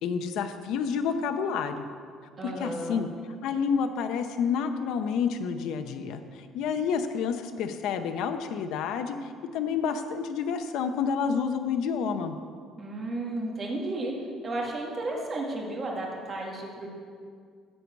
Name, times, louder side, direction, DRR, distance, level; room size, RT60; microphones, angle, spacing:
voice 1, 0.0-1.9 2.4-3.1 3.4-12.4, left 6 dB, 70° left, 7 dB, 0.7 m, -29 dB
voice 2, 2.4-3.0 12.8-14.1 14.4-16.9, right 2 dB, 25° right, -2 dB, 2.0 m, -33 dB
13.5 x 4.7 x 8.4 m, 2.1 s
cardioid pair, 160°, 0 cm